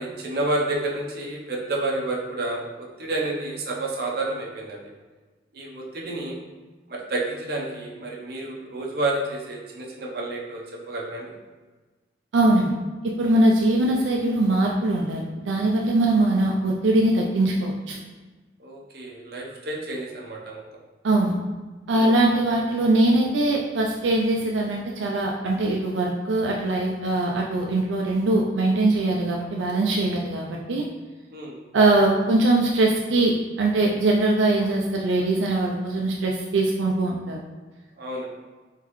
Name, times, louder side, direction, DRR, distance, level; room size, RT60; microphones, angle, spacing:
voice 1, 0.0-4.8 5.5-6.4 6.9-11.3 13.2-13.4 18.6-20.6 21.9-22.2 31.3-31.6 38.0-38.3, right 2 dB, 55° right, -2 dB, 0.7 m, -30 dB
voice 2, 12.3-12.7 13.0-18.0 21.0-21.3 21.9-30.9 31.7-37.4, right 2 dB, 85° right, -1 dB, 0.4 m, -22 dB
3.7 x 3.6 x 3.1 m, 1.3 s
head